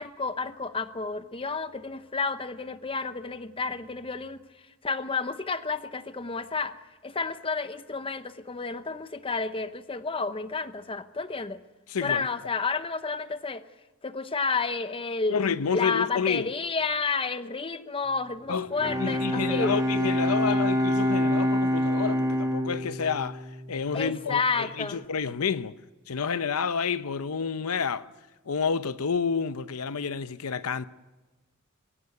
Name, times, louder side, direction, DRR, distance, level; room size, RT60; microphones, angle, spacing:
voice 1, 0.0-4.4 4.8-6.8 7.0-11.6 12.0-13.7 14.0-15.4 15.7-19.8 23.9-25.0, left 4 dB, 25° left, 0.8 m, -31 dB
voice 2, 11.9-12.3 15.3-16.5 18.5-18.7 19.0-25.8 26.1-28.1 28.5-30.9, left 6 dB, 85° left, 0.7 m, -29 dB
Bowed string instrument, 18.7-24.3, equal, 15° right, 1.9 m, -27 dB
23.0 x 16.5 x 9.5 m
head